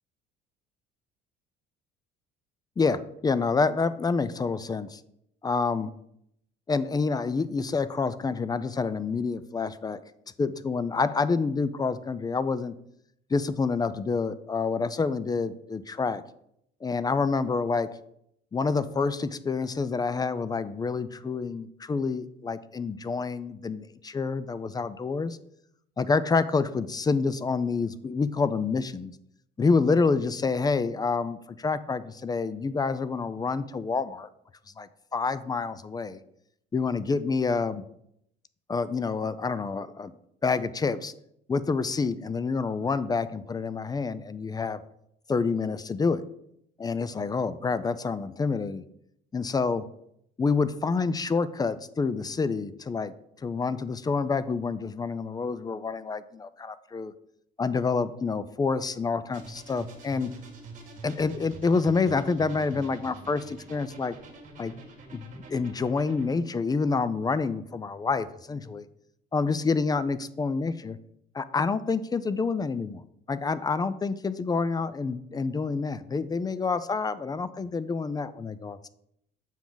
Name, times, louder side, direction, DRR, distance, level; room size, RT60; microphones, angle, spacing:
voice 1, 2.8-5.0 5.4-5.9 6.7-10.0 10.4-12.7 13.3-16.2 16.8-17.9 18.5-25.4 26.0-29.1 29.6-34.3 34.8-36.2 36.7-37.8 38.7-40.1 40.4-41.1 41.5-44.8 45.3-46.2 46.8-48.8 49.3-49.8 50.4-53.1 53.4-57.1 57.6-60.3 61.0-64.2 64.6-64.7 65.1-68.8 69.3-71.0 71.3-73.0 73.3-78.9, left 4 dB, 20° left, 15 dB, 0.4 m, -28 dB
sound 1, 59.3-66.3, right 3 dB, 40° right, 1.8 m, -46 dB
7.1 x 4.8 x 3.9 m, 0.75 s
cardioid pair, 100°, 20 cm